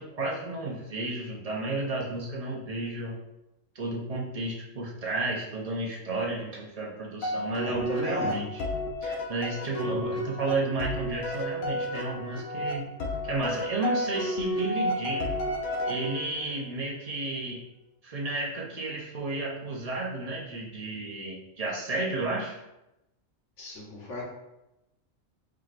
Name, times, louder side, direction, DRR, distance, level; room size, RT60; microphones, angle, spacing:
voice 1, 0.0-3.1 3.7-8.6 9.0-12.9 13.2-15.3 15.9-17.6 18.0-22.6, right 2 dB, 45° right, -3 dB, 0.5 m, -32 dB
sound 1, 7.2-16.5, equal, 85° left, 1.1 m, -32 dB
voice 2, 7.6-8.4 23.6-24.2, left 2 dB, 65° left, -3 dB, 1.3 m, -35 dB
4.7 x 2.9 x 2.4 m, 0.92 s
omnidirectional pair, 1.4 m